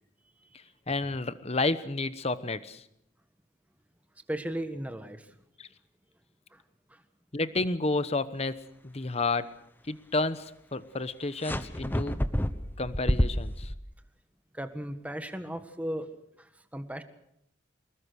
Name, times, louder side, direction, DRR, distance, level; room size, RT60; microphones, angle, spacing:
voice 1, 0.9-2.8 5.6-5.7 7.3-9.5 9.9-12.2 12.8-13.7, left 3 dB, 35° left, 13 dB, 1.1 m, -31 dB
voice 2, 4.3-5.3 6.5-6.6 6.9-7.0 14.5-16.1 16.4-17.0, right 1 dB, 10° right, 8 dB, 1.6 m, -36 dB
sound 1, 11.4-13.8, equal, 10° left, 1.1 m, -28 dB
25.0 x 21.0 x 6.4 m, 0.76 s
head